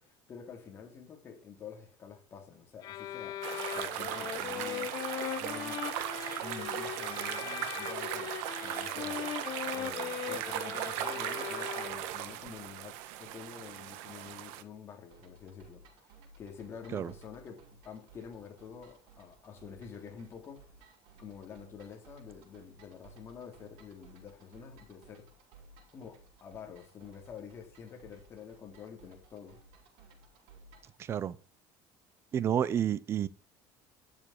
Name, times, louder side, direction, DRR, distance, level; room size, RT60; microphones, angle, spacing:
voice 1, 0.0-5.0 5.4-5.8 6.4-8.3 8.6-9.4 9.7-20.6 21.2-25.3 25.9-29.6, left 7 dB, 25° left, 3.2 m, -48 dB
sound 1, 2.8-12.3, left 11 dB, 45° left, 1.1 m, -39 dB
sound 2, 3.4-14.6, right 13 dB, 85° right, 1.5 m, -38 dB
sound 3, 15.1-31.0, right 3 dB, 70° right, 5.8 m, -59 dB
voice 2, 31.0-31.3 32.3-33.3, right 9 dB, 30° right, 0.7 m, -30 dB
12.5 x 7.4 x 8.7 m
cardioid pair, 170°, 9 cm